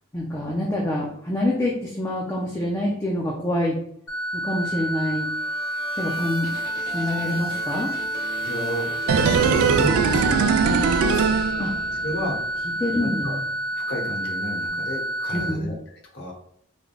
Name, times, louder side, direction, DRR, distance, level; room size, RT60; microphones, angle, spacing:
voice 1, 0.1-3.8 4.4-5.3 6.0-6.5 6.9-7.9 11.6-11.7 12.8-13.4 15.3-15.6, left 1 dB, 15° left, -3 dB, 0.4 m, -26 dB
sound 1, 4.1-15.5, right 1 dB, 70° left, 1.1 m, -29 dB
sound 2, 5.0-10.6, right 2 dB, 65° right, 0.8 m, -40 dB
voice 2, 8.4-11.4 11.9-12.4 13.0-13.4 13.7-16.3, left 1 dB, 50° left, -1 dB, 0.8 m, -32 dB
sound 3, 9.1-12.2 12.5-12.6, right 6 dB, 85° right, 0.3 m, -21 dB
3.3 x 2.2 x 3.8 m, 0.68 s
head